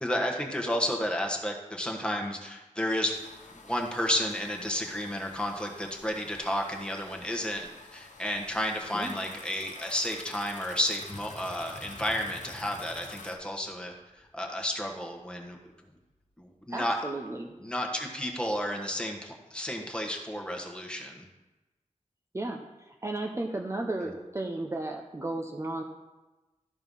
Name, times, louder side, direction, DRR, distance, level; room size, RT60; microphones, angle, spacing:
voice 1, 0.0-3.1 3.6-15.6 16.4-17.0 17.6-21.2, equal, 10° left, 1 dB, 1.4 m, -32 dB
sound 1, 3.1-13.3, left 3 dB, 75° left, 1.0 m, -49 dB
sound 2, 10.9-16.4 16.8-17.0 17.5-17.6, left 2 dB, 45° left, 1.4 m, -50 dB
voice 2, 16.7-17.5 22.3-25.8, right 2 dB, 20° right, 1 dB, 0.7 m, -34 dB
13.0 x 4.5 x 5.5 m, 1.1 s
wide cardioid pair, 105°, 13 cm